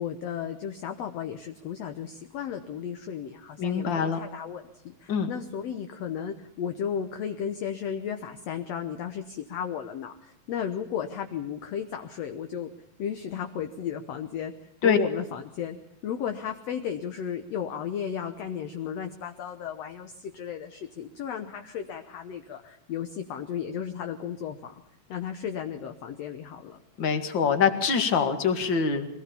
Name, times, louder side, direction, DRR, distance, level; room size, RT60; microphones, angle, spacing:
voice 1, 0.0-12.7 13.0-14.5 14.8-15.8 16.0-24.7 25.1-26.8, left 8 dB, 65° left, 6 dB, 2.0 m, -34 dB
voice 2, 3.6-4.2 5.1-5.3 14.8-15.0 27.0-29.1, left 6 dB, 40° left, 7 dB, 2.3 m, -24 dB
23.0 x 18.5 x 7.0 m, 0.80 s
omnidirectional pair, 3.6 m